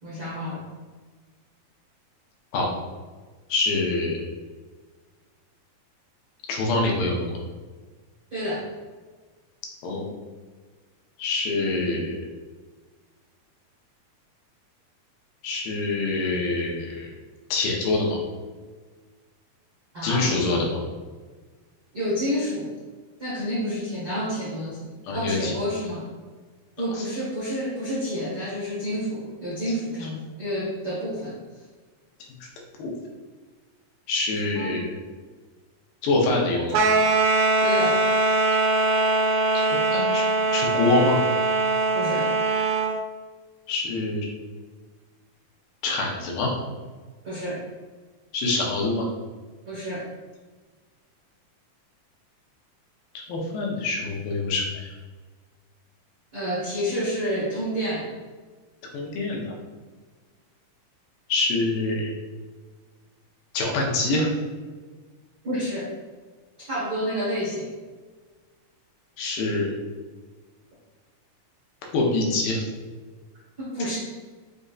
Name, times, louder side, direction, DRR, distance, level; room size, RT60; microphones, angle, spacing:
voice 1, 0.0-0.6 8.3-8.6 11.7-11.8 19.9-20.3 21.9-22.7 23.2-24.8 25.1-26.1 26.8-31.3 34.5-34.8 37.6-38.0 41.9-42.3 47.2-47.6 49.6-50.1 56.3-58.1 65.4-65.9 66.6-67.7 73.6-74.0, equal, 70° right, -10 dB, 0.9 m, -29 dB
voice 2, 3.5-4.2 6.5-7.4 9.8-10.0 11.2-12.2 15.4-17.1 17.5-18.2 20.0-20.8 25.0-25.6 26.9-27.0 32.4-32.5 32.8-32.9 34.1-34.9 36.0-36.9 39.5-40.3 40.5-41.2 43.7-44.3 45.8-46.5 48.3-49.1 53.3-54.9 58.9-59.6 61.3-62.1 63.5-64.3 69.2-69.8 71.9-72.6, left 2 dB, 80° left, -1 dB, 2.4 m, -25 dB
sound 1, 36.7-43.0, right 2 dB, 90° right, 2.4 m, -22 dB
6.3 x 2.6 x 2.3 m, 1.4 s
omnidirectional pair, 4.1 m